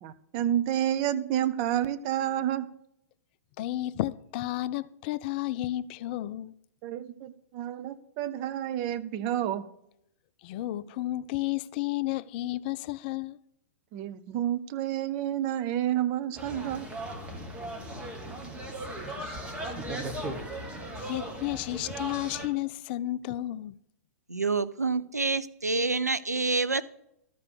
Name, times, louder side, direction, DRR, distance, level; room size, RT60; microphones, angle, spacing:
voice 1, 0.0-2.7 6.8-9.7 13.9-16.9, right 11 dB, 35° right, 0.6 m, -29 dB
voice 2, 3.6-6.5 10.4-13.4 19.2-19.9 21.0-23.8, left 15 dB, 35° left, 0.3 m, -32 dB
sound 1, 16.4-22.5, right 1 dB, 15° right, 1.4 m, -37 dB
voice 3, 24.3-26.8, right 3 dB, 85° right, 0.5 m, -27 dB
13.0 x 4.9 x 6.7 m
figure-of-eight pair, 105°, 9 cm